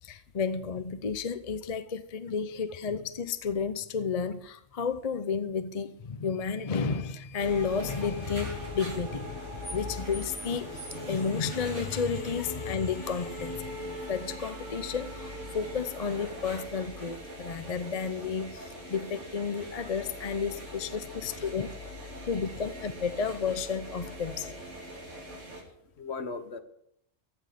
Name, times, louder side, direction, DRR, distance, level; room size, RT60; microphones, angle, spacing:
voice 1, 0.0-13.8 14.1-21.7 22.3-24.6, left 5 dB, 35° left, 0.7 m, -32 dB
sound 1, 7.4-25.6, equal, 65° right, 3.6 m, -41 dB
voice 2, 21.0-21.6 22.1-22.3 25.6-26.6, left 4 dB, 60° left, 1.5 m, -40 dB
15.0 x 6.4 x 9.8 m
omnidirectional pair, 1.3 m